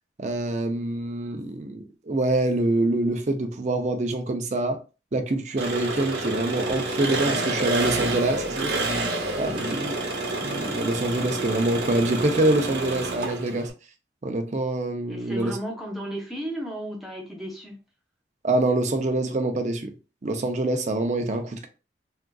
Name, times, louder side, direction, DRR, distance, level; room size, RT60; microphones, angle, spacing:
voice 1, 0.2-4.8 5.1-8.7 9.4-9.9 10.4-13.7 14.2-15.6 18.4-19.9 20.2-21.7, right 2 dB, 40° right, 0.5 m, -25 dB
Engine, 5.6-13.7, right 2 dB, 65° right, 0.9 m, -28 dB
voice 2, 9.4-9.8 15.1-17.7, right 1 dB, ahead, 0.7 m, -34 dB
3.6 x 2.4 x 2.3 m
head